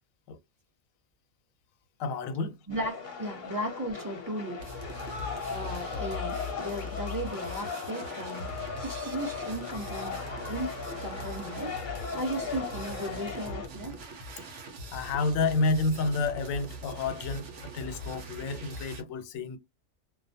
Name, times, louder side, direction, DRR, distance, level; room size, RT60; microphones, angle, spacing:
voice 1, 2.0-2.5 14.9-17.5 17.7-19.6, left 3 dB, 90° left, 1.0 m, -29 dB
sound 1, 2.7-13.7, left 5 dB, 45° left, 0.8 m, -38 dB
voice 2, 2.7-4.6 5.1-8.5 8.8-10.7 11.0-14.0, right 1 dB, 20° right, 0.8 m, -36 dB
sound 2, 4.6-19.0, left 1 dB, 70° right, 1.0 m, -41 dB
2.4 x 2.1 x 2.6 m
omnidirectional pair, 1.4 m